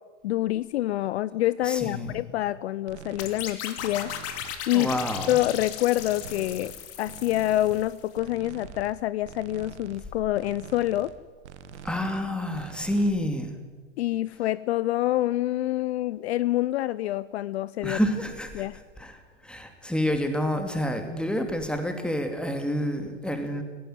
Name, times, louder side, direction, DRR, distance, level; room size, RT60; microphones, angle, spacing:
voice 1, 0.2-4.1 4.7-4.9 5.3-6.7 7.0-11.1 14.0-18.0 18.5-18.8, left 15 dB, 60° left, 18 dB, 0.6 m, -26 dB
voice 2, 1.6-2.3 4.7-5.3 11.8-13.5 17.8-18.6 19.0-19.2 19.4-23.6, equal, ahead, 6 dB, 2.8 m, -28 dB
sound 1, 2.9-3.5 3.8-4.6 4.9-5.7 6.0-6.8 7.0-7.8 8.1-9.0 9.2-10.0 10.3-11.2 11.4-12.3 12.5-13.1, right 7 dB, 65° right, 1.7 m, -45 dB
sound 2, 3.2-8.0, left 10 dB, 40° left, 2.5 m, -37 dB
18.5 x 15.0 x 9.3 m, 1.4 s
hypercardioid pair, 100°, 37 cm